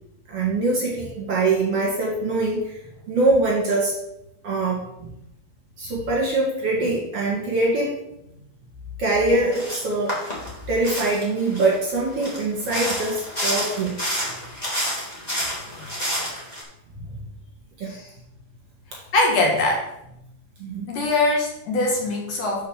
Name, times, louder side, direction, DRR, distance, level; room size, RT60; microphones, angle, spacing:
voice 1, 0.3-2.8 3.1-4.0 4.4-5.1 5.8-7.9 9.0-10.2 10.7-13.9 17.8-17.9 20.6-20.9, right 2 dB, 45° right, -4 dB, 2.5 m, -23 dB
sound 1, 9.5-9.8 10.1-11.8 12.2-16.6, equal, 15° left, 1.7 m, -29 dB
voice 2, 19.1-19.8 20.9-22.6, left 2 dB, 65° left, -1 dB, 2.6 m, -22 dB
6.5 x 5.5 x 6.7 m, 0.84 s
omnidirectional pair, 4.5 m